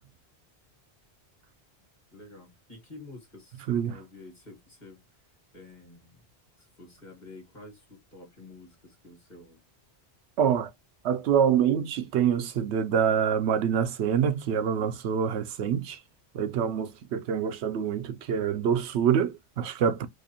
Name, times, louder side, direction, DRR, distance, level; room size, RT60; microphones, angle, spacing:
voice 1, 2.1-5.0 5.5-6.2 6.6-9.6, left 2 dB, 40° left, 1.8 m, -49 dB
voice 2, 10.4-10.7 11.0-16.0 16.3-20.1, right 8 dB, 80° right, 0.8 m, -26 dB
4.6 x 2.5 x 2.8 m
omnidirectional pair, 1.1 m